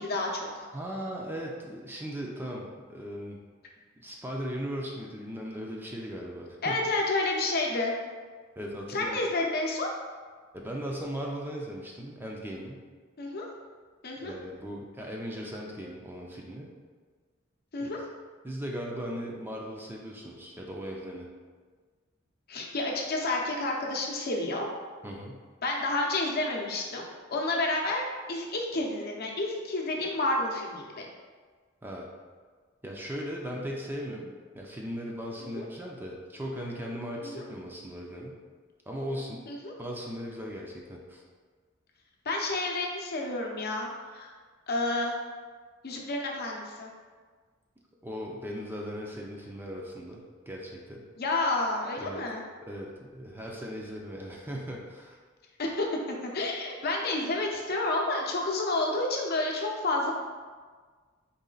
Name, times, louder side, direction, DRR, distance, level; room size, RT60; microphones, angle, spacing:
voice 1, 0.0-0.7 6.6-7.9 8.9-9.9 13.2-13.5 14.0-14.3 17.7-18.0 22.5-24.7 25.6-27.0 27.3-31.1 35.4-35.6 37.2-37.4 39.5-39.7 42.2-43.9 44.1-44.3 44.7-45.2 45.8-46.9 51.2-52.4 55.6-60.1, left 2 dB, 50° left, 0 dB, 0.7 m, -30 dB
voice 2, 0.7-3.4 4.0-6.8 8.6-9.3 10.5-12.8 14.2-16.7 17.8-17.9 18.4-21.3 25.0-25.4 31.8-32.1 32.8-38.4 38.9-39.5 39.8-41.2 48.0-51.0 52.0-52.2 52.7-55.2, equal, 10° right, -2 dB, 0.4 m, -38 dB
4.2 x 3.2 x 3.8 m, 1.5 s
head